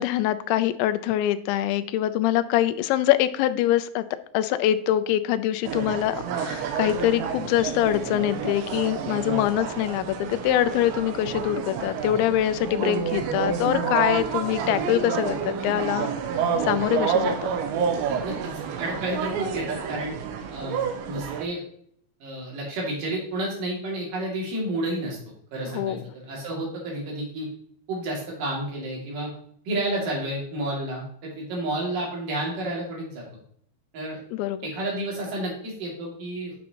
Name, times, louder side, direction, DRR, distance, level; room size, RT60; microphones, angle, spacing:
voice 1, 0.0-4.0 4.3-16.1 16.6-17.4 25.7-26.0 34.3-34.6, left 13 dB, 90° left, 11 dB, 2.8 m, -24 dB
sound 1, 5.7-21.5, right 7 dB, 90° right, 3.1 m, -29 dB
voice 2, 18.8-20.1 20.5-21.6 22.2-25.2 25.5-27.5 27.9-29.3 29.7-33.2 33.9-34.2 34.6-36.6, right 1 dB, 55° right, -3 dB, 3.7 m, -30 dB
9.4 x 6.3 x 2.9 m, 0.63 s
omnidirectional pair, 5.1 m